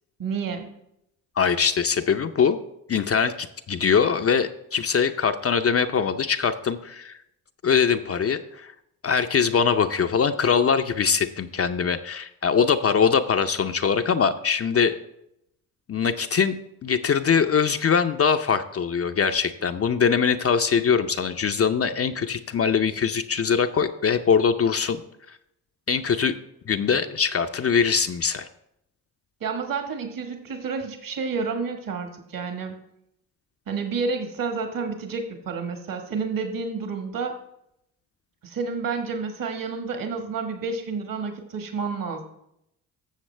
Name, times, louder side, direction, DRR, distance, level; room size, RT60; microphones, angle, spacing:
voice 1, 0.2-0.7 29.4-32.8 33.7-37.4 38.4-42.2, right 5 dB, 45° right, 5 dB, 1.5 m, -30 dB
voice 2, 1.4-2.6 2.9-7.2 7.6-8.7 9.0-14.9 15.9-16.6 16.8-25.0 25.3-25.4 25.9-26.4 26.7-28.5, left 6 dB, 30° left, 8 dB, 0.6 m, -22 dB
13.0 x 7.1 x 3.3 m, 0.81 s
hypercardioid pair, 50°, 45 cm